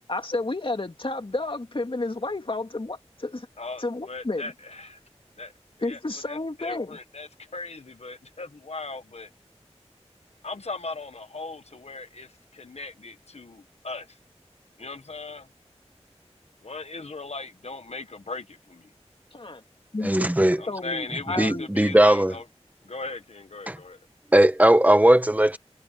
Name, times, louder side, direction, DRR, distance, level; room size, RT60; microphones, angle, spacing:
voice 1, 0.1-3.5 3.8-4.5 5.8-7.0 19.3-19.6 19.9-21.7, left 2 dB, 50° left, 2.3 m, -31 dB
voice 2, 3.6-5.0 5.4-5.5 5.8-6.0 6.3-9.3 10.4-14.2 14.8-15.5 16.6-18.9 20.6-22.4 22.8-24.0, left 3 dB, 70° left, 1.5 m, -38 dB
voice 3, 20.0-20.6 21.4-22.3 23.7-23.8 24.3-25.6, right 1 dB, 15° right, 1.3 m, -18 dB
wide cardioid pair, 55°, 11 cm